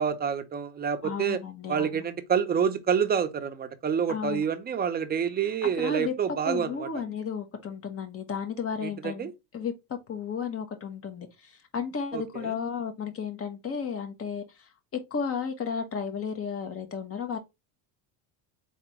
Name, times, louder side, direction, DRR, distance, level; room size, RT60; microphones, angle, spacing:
voice 1, 0.0-1.4 1.7-6.9 8.8-9.3 12.1-12.5, right 7 dB, 20° right, 0.7 m, -28 dB
voice 2, 1.0-2.0 4.1-4.5 5.6-6.1 6.4-9.7 10.1-17.4, left 6 dB, 30° left, 1.2 m, -33 dB
4.5 x 3.5 x 3.1 m
cardioid pair, 130°, 43 cm